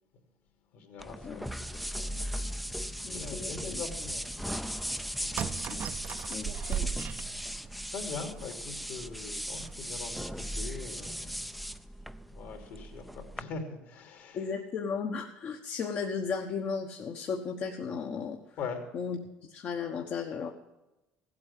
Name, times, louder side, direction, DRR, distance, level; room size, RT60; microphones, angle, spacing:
voice 1, 0.7-4.6 5.2-5.4 7.9-11.3 11.7-11.8 12.3-14.4 18.6-18.8, left 5 dB, 65° left, 4 dB, 3.1 m, -42 dB
sound 1, 1.0-13.4, equal, ahead, 0.5 m, -38 dB
voice 2, 3.0-3.8 5.7-5.8 6.3-6.9 14.3-18.4 18.9-20.5, left 5 dB, 50° left, 3 dB, 1.2 m, -35 dB
sound 2, 5.4-7.9 8.5-8.6 8.8-8.9 9.6-9.9 10.2-10.4, right 8 dB, 45° right, 0.6 m, -36 dB
15.5 x 8.5 x 7.4 m, 0.98 s
supercardioid pair, 110°, 4 cm